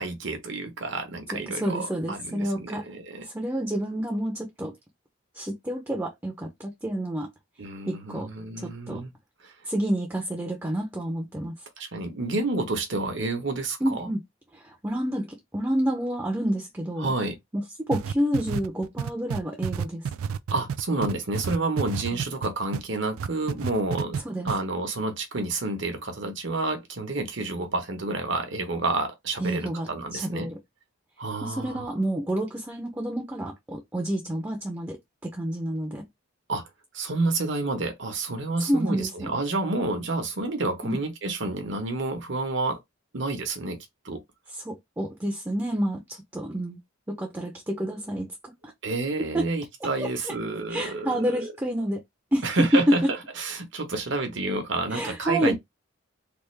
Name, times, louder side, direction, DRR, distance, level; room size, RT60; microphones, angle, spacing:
voice 1, 0.0-3.3 7.6-9.1 9.4-9.5 11.8-14.1 17.0-17.4 20.5-24.2 24.4-30.5 31.2-31.9 36.5-36.6 36.9-42.8 43.1-43.8 44.0-44.2 48.8-51.5 52.4-53.0 53.4-55.5, right 2 dB, 60° right, 1.0 m, -29 dB
voice 2, 1.3-2.9 3.3-4.7 5.3-7.3 7.9-8.3 8.6-9.0 9.7-11.5 13.8-14.2 14.6-17.1 17.5-20.0 22.1-22.2 24.2-24.5 29.4-30.6 31.4-36.1 38.7-39.3 40.8-41.0 44.6-46.8 47.1-48.3 49.3-49.4 50.0-50.1 50.7-52.0 52.3-52.4 52.7-53.1 54.9-55.5, equal, 10° right, 0.6 m, -28 dB
sound 1, 17.9-22.8 23.2-24.2 24.5-24.6, right 7 dB, 90° right, 0.3 m, -29 dB
3.5 x 2.5 x 3.2 m
head